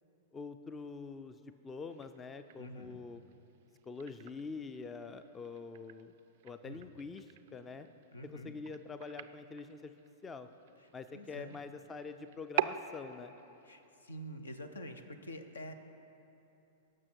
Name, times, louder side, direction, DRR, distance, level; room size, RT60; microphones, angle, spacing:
voice 1, 0.3-3.2 3.8-6.1 6.4-7.9 8.2-9.9 10.2-10.5 10.9-13.3, left 4 dB, 20° left, 10 dB, 0.4 m, -45 dB
sound 1, 1.9-13.9, right 12 dB, 55° right, 0.3 m, -45 dB
voice 2, 2.6-3.0 6.6-6.9 8.1-8.5 11.1-11.6 13.6-15.7, equal, 80° left, 8 dB, 0.7 m, -46 dB
17.5 x 6.2 x 4.5 m, 3.0 s
figure-of-eight pair, 100°, 0 cm